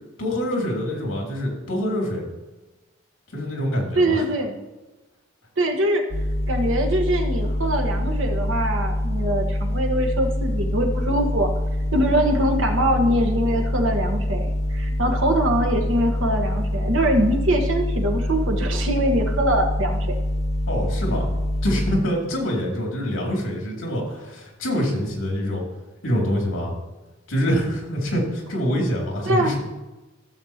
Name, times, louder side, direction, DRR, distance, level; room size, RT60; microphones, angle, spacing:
voice 1, 0.2-2.2 3.3-4.2 20.7-21.2 21.6-25.6 26.0-26.8 27.3-29.6, equal, 75° left, -1 dB, 2.7 m, -25 dB
voice 2, 3.9-4.6 5.6-6.0 6.5-11.5 11.9-20.1 29.2-29.5, right 1 dB, 65° right, 2 dB, 1.3 m, -23 dB
sound 1, 6.1-22.0, left 1 dB, 30° left, 0.5 m, -25 dB
14.5 x 7.1 x 2.9 m, 1.1 s
head